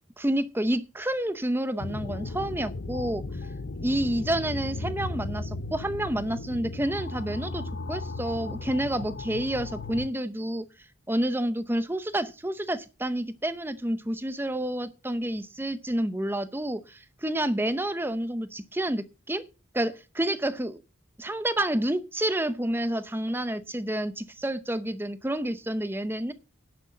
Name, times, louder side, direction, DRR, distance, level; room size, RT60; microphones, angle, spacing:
voice 1, 0.2-3.2 3.7-10.7 11.1-19.4 19.7-20.8 21.2-26.3, right 1 dB, 10° right, 0.7 m, -29 dB
sound 1, 1.8-10.1, left 2 dB, 50° left, 0.7 m, -35 dB
10.5 x 6.3 x 8.5 m
head